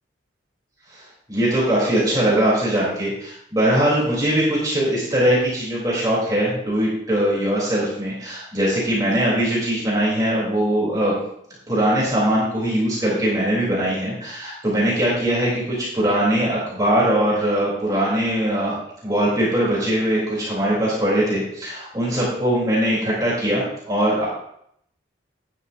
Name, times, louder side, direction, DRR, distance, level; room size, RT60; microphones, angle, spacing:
voice 1, 1.3-11.2 11.7-18.8 19.0-24.3, right 1 dB, 20° right, -6 dB, 3.4 m, -21 dB
12.5 x 9.5 x 2.7 m, 0.71 s
head